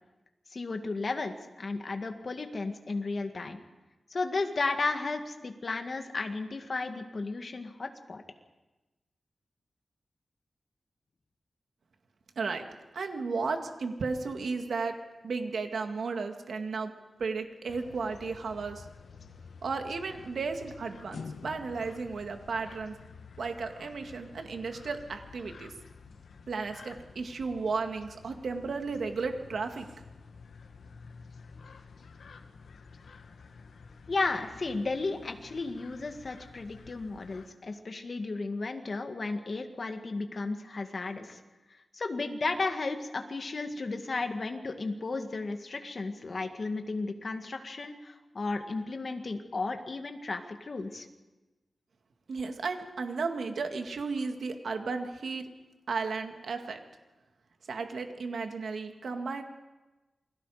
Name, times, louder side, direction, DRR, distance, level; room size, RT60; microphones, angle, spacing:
voice 1, 0.5-3.6 4.1-8.2 34.1-41.4 41.9-51.1, left 3 dB, 45° left, 5 dB, 2.0 m, -34 dB
voice 2, 12.9-15.0 15.2-16.9 17.2-18.9 19.6-23.0 23.4-25.7 26.5-29.9 52.3-55.5 55.9-56.8 57.7-59.4, right 4 dB, 75° right, 5 dB, 2.1 m, -34 dB
sound 1, 17.7-37.5, left 5 dB, 85° left, 1.6 m, -50 dB
28.5 x 21.5 x 5.0 m, 1.1 s
wide cardioid pair, 115°, 0 cm